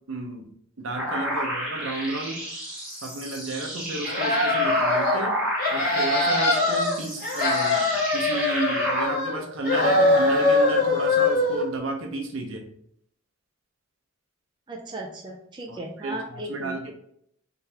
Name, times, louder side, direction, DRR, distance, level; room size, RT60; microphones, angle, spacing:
voice 1, 0.1-0.5 0.8-2.4 3.0-5.3 5.7-12.6 15.7-16.9, right 2 dB, 65° right, 2 dB, 0.8 m, -32 dB
sound 1, 1.0-9.1, equal, 5° right, 1.4 m, -31 dB
sound 2, 4.0-5.2 5.6-6.9 7.2-9.4 9.6-11.6, left 2 dB, 45° left, 1.5 m, -22 dB
voice 2, 14.7-16.9, right 1 dB, 20° right, 0 dB, 0.4 m, -36 dB
3.8 x 3.4 x 2.9 m, 0.69 s
head